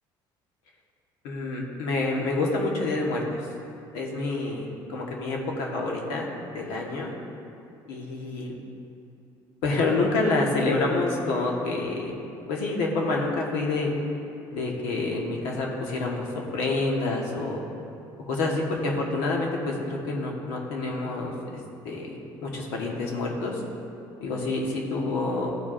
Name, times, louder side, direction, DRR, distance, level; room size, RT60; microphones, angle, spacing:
voice 1, 1.2-3.4 3.9-6.3 6.5-7.1 7.9-8.5 9.6-12.1 12.5-13.9 14.5-17.6 18.3-23.6 24.2-25.5, left 2 dB, 90° left, -1 dB, 1.3 m, -28 dB
14.0 x 4.7 x 2.5 m, 2.7 s
cardioid pair, 110°, 10 cm